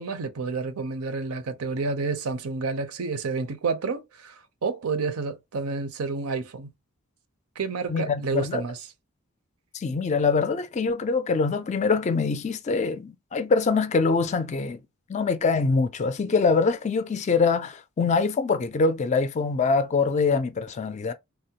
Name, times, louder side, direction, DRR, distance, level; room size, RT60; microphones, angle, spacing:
voice 1, 0.0-4.4 4.6-6.7 7.6-8.8, right 4 dB, 85° right, 0.6 m, -29 dB
voice 2, 7.9-8.6 9.7-14.8 15.1-21.1, left 4 dB, 30° left, 0.3 m, -24 dB
3.4 x 2.1 x 2.8 m
head